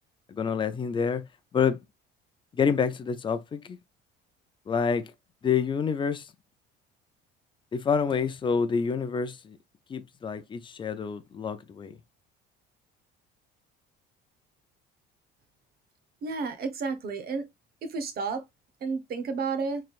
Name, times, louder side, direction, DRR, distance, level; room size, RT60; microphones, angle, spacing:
voice 1, 0.3-1.2 1.5-1.8 2.5-3.8 4.7-5.1 5.4-6.3 7.7-9.6 9.9-12.0, left 6 dB, 25° left, 0.5 m, -27 dB
voice 2, 16.2-17.5 17.9-18.4 18.8-19.8, right 4 dB, 45° right, 0.9 m, -31 dB
4.3 x 3.3 x 2.4 m
cardioid pair, 125°, 21 cm